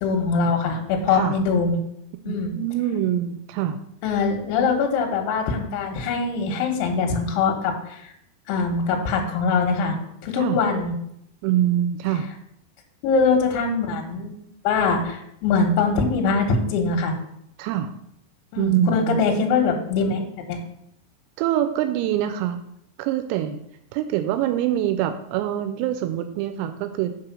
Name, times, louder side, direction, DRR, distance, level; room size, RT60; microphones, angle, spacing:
voice 1, 0.0-1.8 2.3-2.5 4.0-8.1 8.5-10.0 10.2-10.9 13.0-14.3 14.6-17.1 18.5-20.6, left 4 dB, 75° left, 2 dB, 3.3 m, -22 dB
voice 2, 2.3-3.8 10.4-10.6 11.4-12.2 17.6-17.9 18.6-19.2 21.4-22.6 23.0-23.6 23.9-27.1, right 11 dB, 85° right, 8 dB, 3.2 m, -24 dB
7.2 x 4.8 x 6.0 m, 0.76 s
omnidirectional pair, 5.9 m